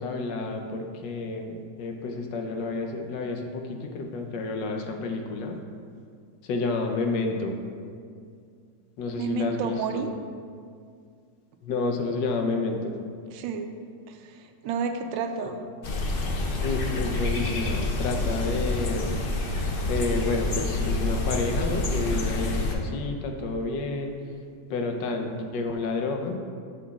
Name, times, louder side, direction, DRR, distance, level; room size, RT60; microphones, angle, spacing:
voice 1, 0.0-5.6 6.4-7.6 9.0-10.1 11.6-13.0 15.4-15.5 16.6-19.2 19.9-24.2 24.7-26.4, left 3 dB, 75° left, 3 dB, 1.4 m, -30 dB
voice 2, 9.2-10.1 13.3-13.7 14.1-15.7, right 6 dB, 85° right, 6 dB, 1.3 m, -31 dB
sound 1, 15.8-22.7, left 2 dB, 60° left, 0.5 m, -28 dB
11.0 x 7.1 x 2.4 m, 2.2 s
omnidirectional pair, 2.0 m